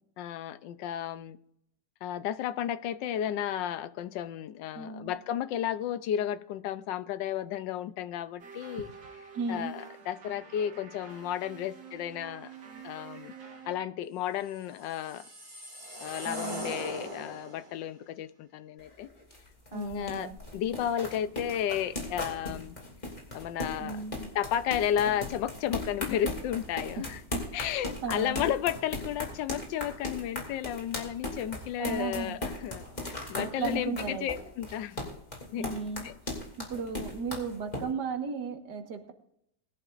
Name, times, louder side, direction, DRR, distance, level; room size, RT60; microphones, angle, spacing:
voice 1, 0.2-1.4 2.0-8.9 9.5-12.5 12.8-13.3 13.7-15.3 16.0-19.1 19.7-22.8 23.3-24.0 24.3-27.2 27.5-35.1 35.5-35.6 36.0-36.1, left 10 dB, 85° left, 1.4 m, -33 dB
voice 2, 4.8-5.1 9.3-9.7 16.2-16.8 19.7-20.4 23.8-24.3 27.3-27.4 27.7-28.5 31.8-32.4 33.3-34.3 35.6-36.1 36.6-39.1, right 4 dB, 70° right, 2.0 m, -35 dB
sound 1, 8.4-13.7, right 6 dB, 85° right, 2.1 m, -48 dB
sound 2, 14.5-17.7, right 1 dB, 15° right, 5.1 m, -40 dB
sound 3, 18.8-37.8, left 1 dB, 25° left, 2.9 m, -38 dB
20.5 x 11.0 x 2.5 m
omnidirectional pair, 1.9 m